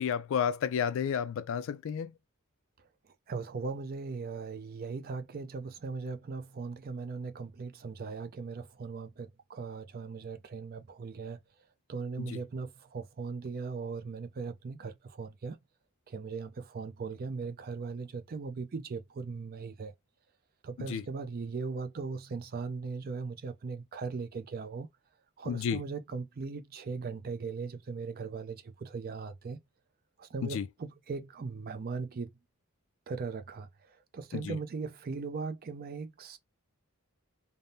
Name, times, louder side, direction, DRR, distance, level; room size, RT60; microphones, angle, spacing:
voice 1, 0.0-2.1 12.2-12.4 20.8-21.0 25.4-25.8 30.4-30.7 34.3-34.6, left 7 dB, 60° left, 0.3 m, -31 dB
voice 2, 3.3-11.4 11.9-15.6 16.1-19.9 20.6-24.9 25.4-29.6 30.2-32.4 33.1-36.4, right 4 dB, 45° right, 0.4 m, -39 dB
3.4 x 2.0 x 2.6 m
head